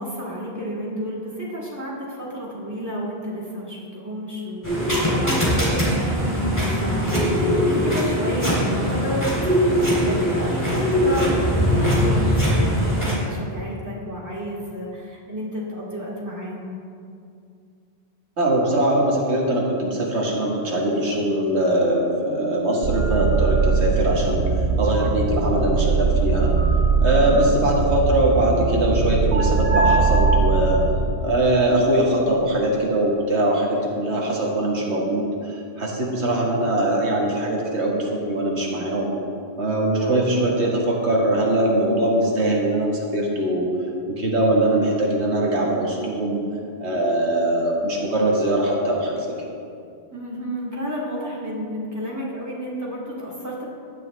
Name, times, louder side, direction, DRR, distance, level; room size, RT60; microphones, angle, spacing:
voice 1, 0.0-16.8 27.0-27.4 40.0-40.3 50.1-53.7, equal, 15° right, -6 dB, 2.6 m, -31 dB
sound 1, 4.6-13.2, equal, 15° left, 3.2 m, -21 dB
voice 2, 18.4-24.4 24.8-26.5 27.0-30.8 31.2-35.2 35.8-39.1 39.6-43.7 44.2-46.4 46.8-49.3, right 1 dB, 90° right, -2 dB, 2.0 m, -21 dB
sound 2, 22.8-31.0, right 4 dB, 70° right, 1.2 m, -20 dB
16.0 x 10.5 x 3.4 m, 2.4 s
omnidirectional pair, 1.1 m